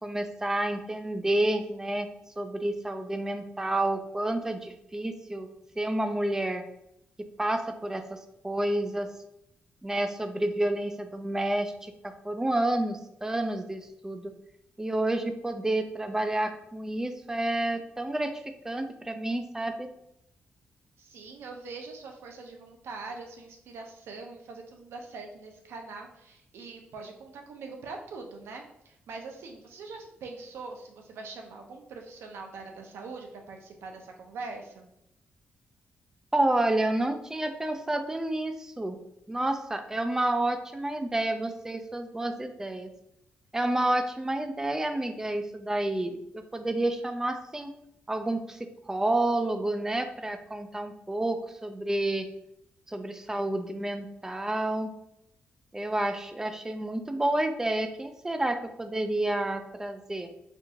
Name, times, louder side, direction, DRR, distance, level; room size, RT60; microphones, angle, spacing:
voice 1, 0.0-2.1 2.4-5.5 5.8-6.6 7.2-9.1 9.8-14.3 14.8-18.3 18.6-19.9 36.3-39.0 39.3-42.9 43.5-47.7 48.1-52.3 52.9-54.9 55.7-60.3, right 1 dB, 15° right, 7 dB, 0.3 m, -29 dB
voice 2, 21.0-34.9, right 3 dB, 90° right, 3 dB, 0.6 m, -43 dB
4.4 x 2.4 x 2.7 m, 0.79 s
cardioid pair, 110°, 4 cm